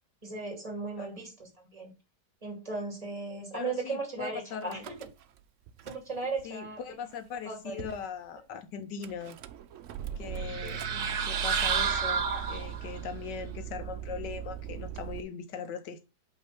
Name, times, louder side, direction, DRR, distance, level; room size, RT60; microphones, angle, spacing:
voice 1, 0.2-1.9 2.4-5.0 5.9-6.8 7.4-7.8 10.4-11.1, right 3 dB, 20° right, 2.4 m, -37 dB
voice 2, 3.5-4.8 6.4-9.4 10.2-10.8 11.2-16.0, left 6 dB, 80° left, 1.6 m, -40 dB
Car / Engine starting / Idling, 4.6-5.4 5.7-6.4 7.1-7.2 7.4-7.5 7.8-8.1 9.0-15.2, right 9 dB, 90° right, 0.6 m, -40 dB
sound 1, 10.4-13.0, right 6 dB, 65° right, 1.3 m, -30 dB
5.7 x 3.6 x 5.8 m
omnidirectional pair, 1.9 m